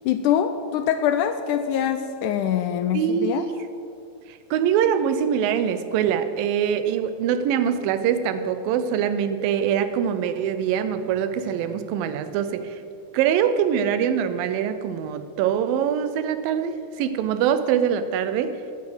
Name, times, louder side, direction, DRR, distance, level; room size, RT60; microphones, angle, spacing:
voice 1, 0.1-3.5, left 9 dB, 80° left, 8 dB, 1.8 m, -24 dB
voice 2, 2.9-3.6 4.3-12.8 13.1-18.5, right 8 dB, 85° right, 11 dB, 2.4 m, -23 dB
9.5 x 9.3 x 7.8 m, 2.5 s
omnidirectional pair, 4.0 m